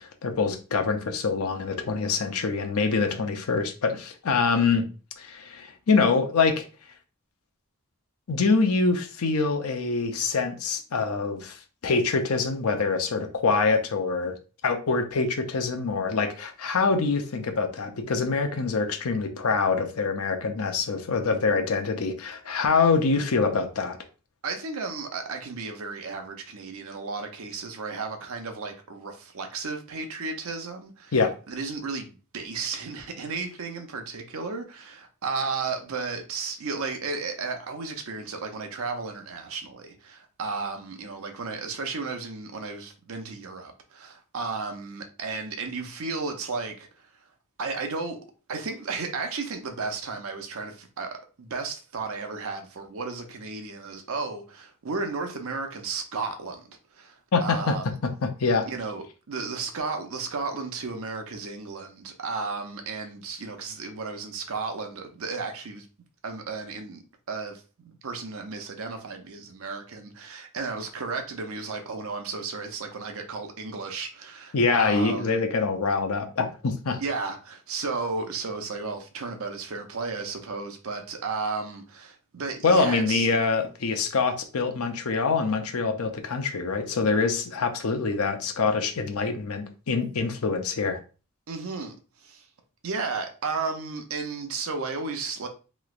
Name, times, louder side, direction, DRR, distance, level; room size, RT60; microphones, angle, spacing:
voice 1, 0.0-4.9 5.2-6.6 8.3-11.6 11.8-14.4 14.6-24.0 31.1-31.3 57.3-57.7 58.2-58.7 74.5-77.0 82.6-91.0, left 4 dB, 80° left, 0.6 m, -25 dB
voice 2, 24.4-31.1 31.5-47.1 47.6-48.2 48.5-58.0 58.7-65.9 66.2-75.4 77.0-83.3 91.5-92.5 92.8-95.5, right 4 dB, 65° right, 0.6 m, -34 dB
3.1 x 3.0 x 2.4 m
head